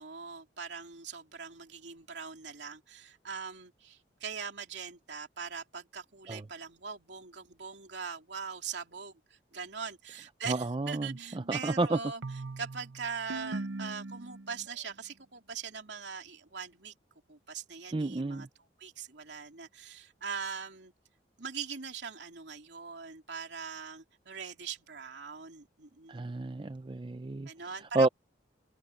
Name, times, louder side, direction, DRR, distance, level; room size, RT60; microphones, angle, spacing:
voice 1, 0.0-12.2 12.6-16.9 17.3-20.9 21.4-26.2 27.4-28.1, right 6 dB, 70° right, 3.2 m, -41 dB
voice 2, 10.5-12.0 17.9-18.5 26.1-27.5 27.9-28.1, right 2 dB, 25° right, 0.5 m, -30 dB
sound 1, 11.1-14.7, right 2 dB, 85° right, 0.8 m, -42 dB
head